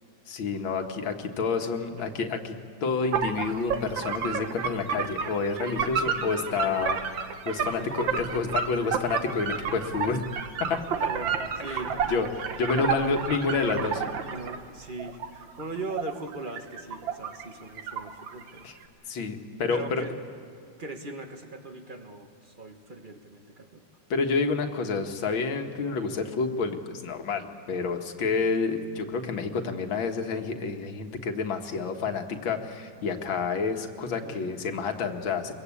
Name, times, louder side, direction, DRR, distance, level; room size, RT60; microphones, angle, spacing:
voice 1, 0.3-2.6 2.8-7.2 7.5-10.2 10.7-10.8 11.7-11.8 12.1-12.3 12.6-14.0 18.6-18.8 19.1-20.1 24.1-35.5, left 4 dB, 85° left, 5 dB, 2.2 m, -29 dB
voice 2, 1.6-2.1 5.9-6.1 7.6-8.3 10.9-12.2 13.7-18.7 19.0-19.1 19.7-20.1 20.8-23.8 34.2-34.5, right 2 dB, 30° right, 5 dB, 1.5 m, -40 dB
sound 1, 3.1-14.6 15.0-17.5 17.8-18.6, right 7 dB, 75° right, 1.9 m, -31 dB
24.5 x 22.5 x 8.4 m, 2.2 s
omnidirectional pair, 2.1 m